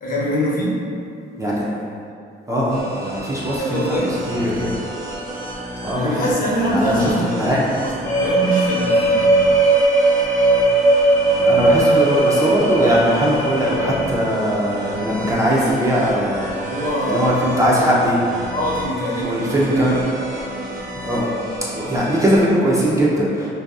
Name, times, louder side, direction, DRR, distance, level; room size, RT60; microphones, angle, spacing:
voice 1, 0.0-0.8 3.6-4.1 5.9-7.4 7.7-9.3 16.7-17.5 18.5-19.6, equal, 45° left, -6 dB, 0.7 m, -23 dB
voice 2, 1.4-1.7 2.5-4.0 4.3-4.7 5.8-6.3 6.7-7.7 11.4-16.7 17.1-18.2 19.2-20.0 21.0-21.4 21.7-23.5, equal, 15° right, -6 dB, 0.4 m, -20 dB
sound 1, 2.7-22.4, right 1 dB, 60° right, 0.8 m, -32 dB
sound 2, 8.0-14.0, right 2 dB, 85° left, 0.7 m, -17 dB
2.6 x 2.2 x 2.3 m, 2.5 s
cardioid pair, 90°, 20 cm